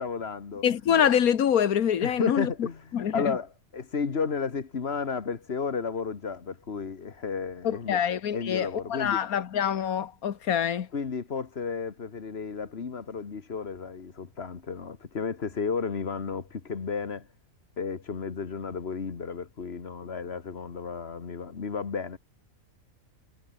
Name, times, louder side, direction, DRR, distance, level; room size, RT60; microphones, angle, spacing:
voice 1, 0.0-0.6 2.0-8.0 8.3-9.2 10.9-17.3 17.8-22.2, left 5 dB, 45° left, 1.7 m, -33 dB
voice 2, 0.6-2.7 2.9-3.3 7.6-10.9, left 9 dB, 85° left, 1.6 m, -25 dB
omnidirectional pair, 1.5 m